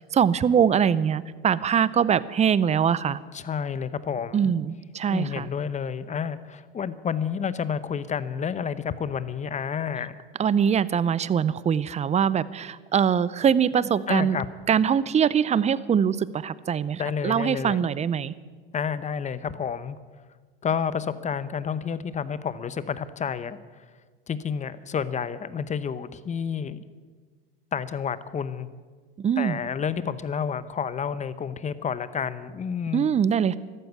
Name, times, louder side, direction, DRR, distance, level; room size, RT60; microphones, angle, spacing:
voice 1, 0.1-3.2 4.3-5.5 10.4-14.4 14.7-18.3 29.2-29.6 32.9-33.5, right 8 dB, 25° right, 18 dB, 0.6 m, -23 dB
voice 2, 3.3-4.5 5.1-10.2 14.1-14.5 17.0-17.9 18.7-20.0 20.6-23.6 24.3-26.8 27.7-28.7 29.4-33.0, left 7 dB, 25° left, 15 dB, 0.8 m, -30 dB
14.0 x 12.5 x 8.1 m, 1.5 s
hypercardioid pair, 95°, 29 cm